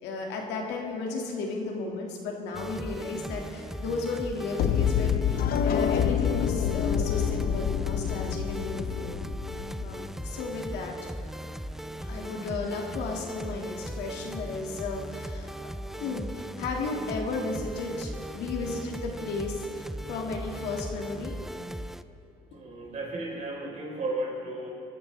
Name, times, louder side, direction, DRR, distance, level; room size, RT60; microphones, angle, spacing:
voice 1, 0.0-9.1 9.8-11.1 12.0-15.5 16.0-21.3 22.5-22.6, left 3 dB, 80° left, 0 dB, 2.0 m, -34 dB
sound 1, 2.5-22.0, right 1 dB, ahead, 0.4 m, -38 dB
sound 2, 4.6-10.6, left 8 dB, 60° left, 0.6 m, -27 dB
voice 2, 22.5-24.7, right 2 dB, 45° right, -1 dB, 3.9 m, -34 dB
23.0 x 13.5 x 3.3 m, 2.9 s
cardioid pair, 110°, 17 cm